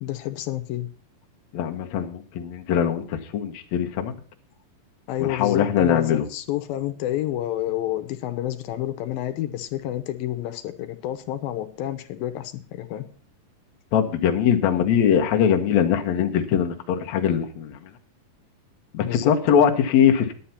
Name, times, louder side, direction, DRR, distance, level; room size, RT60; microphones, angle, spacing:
voice 1, 0.0-0.9 5.1-13.1 19.0-19.6, left 13 dB, 85° left, 9 dB, 2.6 m, -29 dB
voice 2, 1.5-4.1 5.2-6.3 13.9-17.9 18.9-20.4, left 8 dB, 65° left, 4 dB, 2.1 m, -21 dB
10.0 x 9.3 x 5.7 m, 0.43 s
omnidirectional pair, 4.1 m